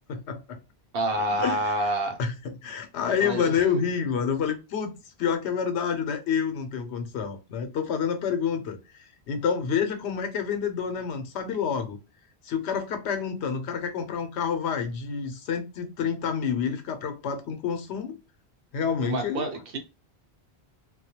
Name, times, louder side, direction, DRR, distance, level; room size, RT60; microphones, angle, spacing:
voice 1, 0.1-0.6 1.4-1.7 2.2-12.0 12.4-18.2 18.7-19.5, left 7 dB, 90° left, 0.9 m, -28 dB
voice 2, 0.9-2.2 3.2-3.5 19.0-19.8, right 1 dB, 60° right, 0.9 m, -27 dB
2.3 x 2.1 x 2.8 m
omnidirectional pair, 1.1 m